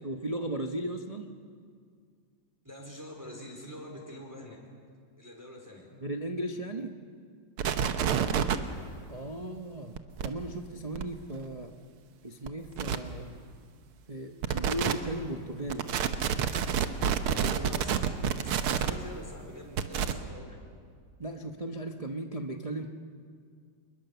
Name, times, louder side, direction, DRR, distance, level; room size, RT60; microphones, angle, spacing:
voice 1, 0.0-1.3 6.0-7.0 9.1-10.0 10.2-11.7 12.2-13.3 14.1-15.9 21.2-22.9, right 1 dB, 30° right, 3 dB, 0.7 m, -36 dB
voice 2, 2.6-4.6 5.2-5.9 8.0-8.5 17.3-20.6, left 1 dB, 10° right, 0 dB, 3.9 m, -45 dB
sound 1, 7.6-8.6 10.0-10.3 11.0-11.1 12.5-12.6 12.8-13.0 14.4-14.9 15.7-18.9 19.8-20.1, right 8 dB, 80° right, 1.9 m, -28 dB
26.0 x 21.5 x 6.9 m, 2.1 s
omnidirectional pair, 2.3 m